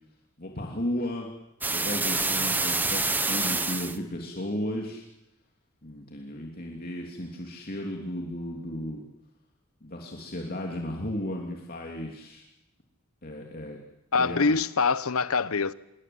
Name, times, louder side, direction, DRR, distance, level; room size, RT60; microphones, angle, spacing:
voice 1, 0.4-1.3 1.7-5.0 5.8-9.0 9.8-12.4 13.2-13.8 14.2-14.6, left 1 dB, 45° left, 3.0 m, -34 dB
sound 1, 1.6-4.0, right 3 dB, 10° right, 1.1 m, -27 dB
voice 2, 14.1-15.7, left 4 dB, 85° left, 1.0 m, -24 dB
26.0 x 22.5 x 8.0 m
head